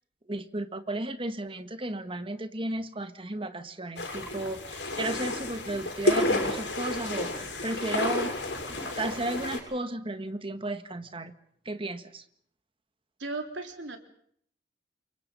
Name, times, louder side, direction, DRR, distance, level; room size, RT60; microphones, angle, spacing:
voice 1, 0.3-8.3 8.7-11.3 11.6-12.2, right 1 dB, 30° right, 9 dB, 1.7 m, -34 dB
sound 1, 4.0-9.6, left 1 dB, 75° left, 7.1 m, -30 dB
voice 2, 13.2-14.0, right 3 dB, 90° right, 5 dB, 3.9 m, -36 dB
29.0 x 24.0 x 5.6 m, 0.65 s
head